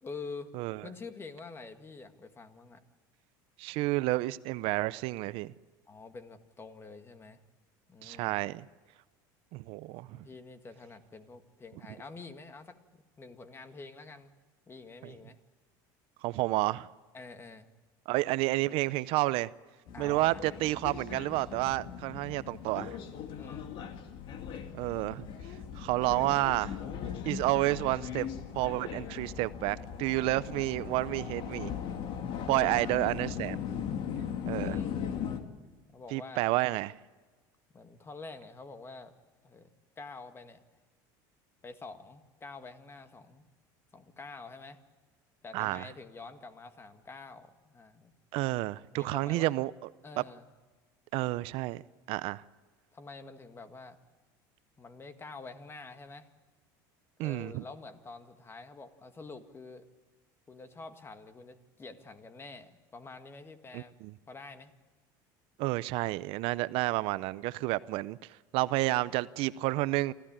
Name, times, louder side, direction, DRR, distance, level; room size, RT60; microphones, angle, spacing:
voice 1, 0.0-0.5 0.8-2.8 5.9-7.4 7.9-8.4 10.1-14.3 14.7-15.4 17.1-17.7 19.9-20.4 23.3-23.7 32.5-33.2 34.4-35.0 35.9-36.4 37.7-39.1 39.4-39.7 40.0-40.6 41.6-43.5 43.9-44.8 45.4-48.1 48.9-49.5 50.0-50.4 52.9-54.0 54.8-56.3 57.2-59.9 60.5-63.9 64.3-64.7, left 3 dB, 25° left, 1.8 m, -47 dB
voice 2, 3.6-5.5 8.0-8.7 9.5-10.1 15.0-15.1 16.2-16.9 18.1-19.5 20.0-23.0 24.7-25.3 25.8-26.8 27.2-28.3 28.6-31.7 32.5-33.6 34.5-34.8 36.1-36.9 45.5-45.8 48.3-49.7 51.1-51.8 52.1-52.4 57.2-57.6 63.7-64.1 65.6-68.2 68.5-70.1, right 19 dB, 65° right, 0.6 m, -30 dB
sound 1, 19.9-35.4, left 8 dB, 55° left, 2.2 m, -39 dB
28.0 x 13.5 x 8.9 m
supercardioid pair, 105°, 10 cm